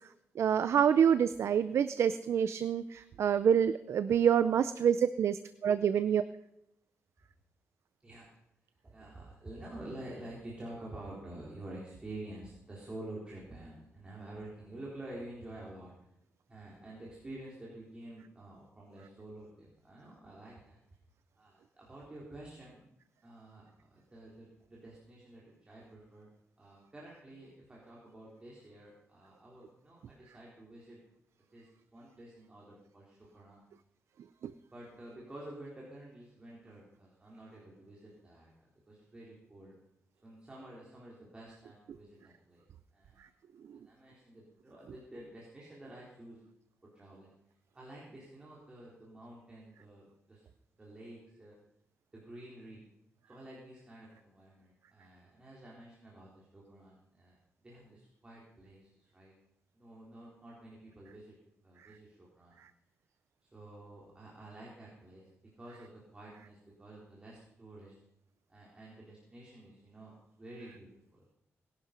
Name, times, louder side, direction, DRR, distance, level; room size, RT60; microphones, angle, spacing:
voice 1, 0.4-6.2 34.4-34.5 43.7-43.8 61.8-61.9, right 8 dB, 70° right, 13 dB, 0.5 m, -27 dB
voice 2, 8.8-15.9 16.5-20.8 21.4-22.8 23.2-26.3 26.6-31.0 31.5-31.7 31.9-33.6 34.7-39.8 40.2-42.7 42.9-43.3 43.6-46.4 46.9-47.3 47.7-50.4 50.8-51.5 52.1-52.8 53.3-59.3 59.7-61.4 61.6-62.6 63.4-65.3 65.6-68.0 68.5-70.1 70.4-71.3, right 1 dB, 20° right, -5 dB, 3.8 m, -49 dB
20.0 x 11.5 x 5.2 m, 0.83 s
wide cardioid pair, 135°, 5 cm